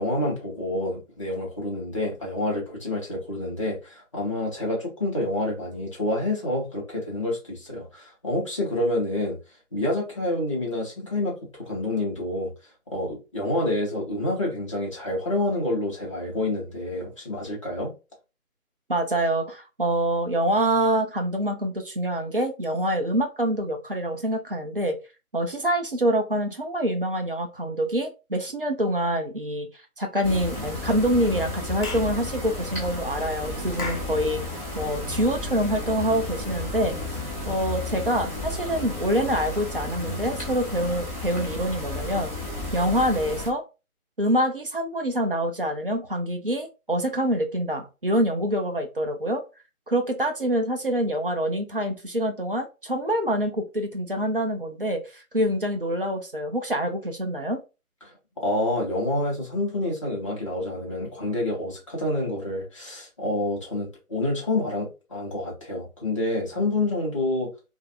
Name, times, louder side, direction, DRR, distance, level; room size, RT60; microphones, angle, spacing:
voice 1, 0.0-9.4 9.7-12.5 12.9-17.9 58.0-67.5, left 1 dB, 20° left, 0.6 m, -28 dB
voice 2, 18.9-25.0 25.3-29.7 30.0-34.4 34.8-42.3 42.7-43.6 44.2-49.4 49.9-57.6, right 1 dB, 40° right, 0.4 m, -26 dB
sound 1, 30.2-43.5, left 2 dB, 10° right, 0.9 m, -33 dB
Clapping / Chirp tweet, 31.8-32.1 33.8-34.1, left 3 dB, 70° left, 1.1 m, -34 dB
2.4 x 2.4 x 2.7 m
figure-of-eight pair, 145°, 44 cm